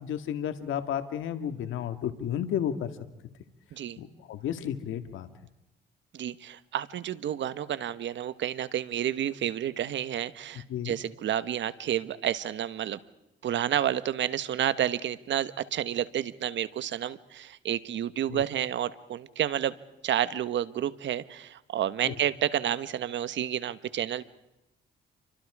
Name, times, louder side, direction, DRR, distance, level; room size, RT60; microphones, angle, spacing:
voice 1, 0.0-2.9 4.0-5.3 10.7-10.9 18.3-18.4 22.0-22.1, left 9 dB, 80° left, 9 dB, 1.8 m, -32 dB
voice 2, 6.1-13.0 13.4-19.8 20.0-24.2, right 10 dB, 70° right, 14 dB, 1.4 m, -30 dB
29.0 x 25.0 x 4.9 m, 0.90 s
cardioid pair, 90°, 20 cm